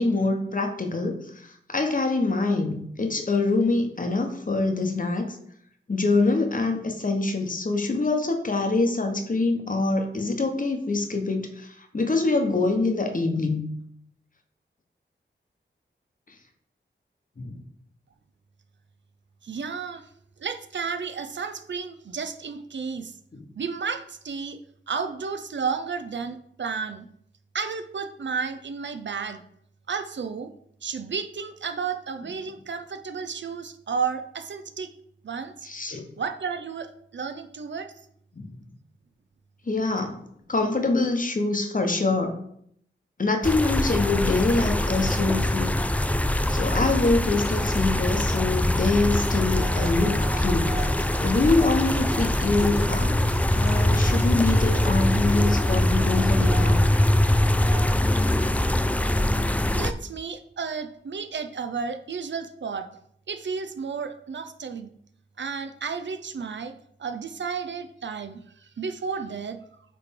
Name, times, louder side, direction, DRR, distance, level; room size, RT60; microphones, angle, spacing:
voice 1, 0.0-5.4 5.9-13.7 17.4-17.6 23.3-23.4 35.6-36.1 38.3-38.5 39.7-40.2 40.5-42.4 43.2-45.7 46.5-50.8 51.2-53.2 53.5-56.8, left 3 dB, 45° left, 5 dB, 1.0 m, -25 dB
voice 2, 19.4-20.1 20.4-23.2 23.6-24.6 24.9-27.1 27.5-29.4 29.9-30.5 30.8-34.9 35.2-35.7 36.2-37.9 59.8-62.9 63.3-64.9 65.4-69.6, right 5 dB, 70° right, 8 dB, 0.5 m, -32 dB
sound 1, 43.4-59.9, left 1 dB, 5° left, 0.3 m, -23 dB
sound 2, 49.2-59.5, right 1 dB, 35° right, 1.1 m, -39 dB
8.5 x 3.3 x 3.6 m, 0.69 s
wide cardioid pair, 70°, 20 cm